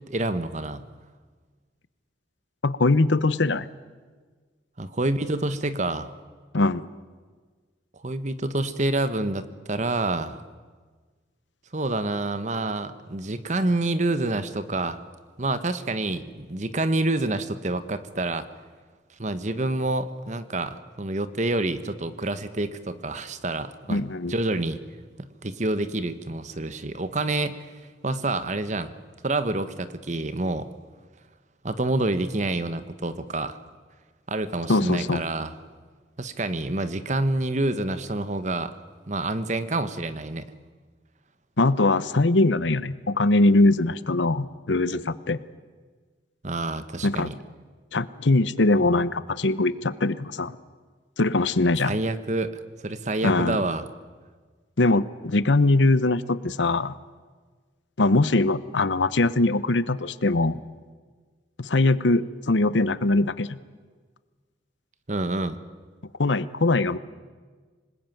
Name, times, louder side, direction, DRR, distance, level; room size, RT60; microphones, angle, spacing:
voice 1, 0.1-0.8 4.8-6.1 8.0-10.4 11.7-15.0 15.4-18.5 19.2-24.0 24.3-24.8 25.2-27.7 28.0-28.9 29.2-30.7 31.6-33.6 34.3-35.5 36.2-38.7 39.1-40.5 46.4-47.4 51.7-52.5 52.8-53.9 65.1-65.6, right 2 dB, 40° right, 12 dB, 1.2 m, -27 dB
voice 2, 2.6-3.7 6.5-6.8 23.9-24.3 34.7-35.2 41.6-45.4 47.0-47.3 47.9-50.6 51.2-52.0 53.2-53.6 54.8-56.9 58.0-60.6 61.6-63.6 66.2-67.0, left 2 dB, 80° left, 16 dB, 0.9 m, -22 dB
26.0 x 19.5 x 9.2 m, 1.5 s
head